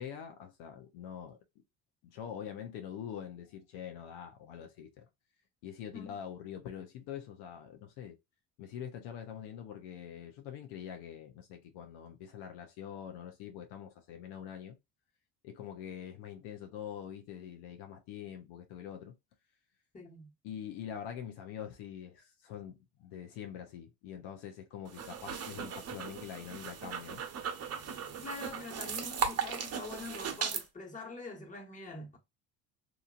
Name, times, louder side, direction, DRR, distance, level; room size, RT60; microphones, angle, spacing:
voice 1, 0.0-1.4 2.0-5.1 5.6-8.2 8.6-14.8 15.4-19.1 20.4-27.2, left 9 dB, 70° left, 0.8 m, -44 dB
voice 2, 19.9-20.3 28.2-32.2, left 3 dB, 20° left, 1.5 m, -45 dB
sound 1, 24.9-30.6, right 7 dB, 40° right, 0.9 m, -37 dB
2.9 x 2.6 x 2.5 m
supercardioid pair, 75°, 40 cm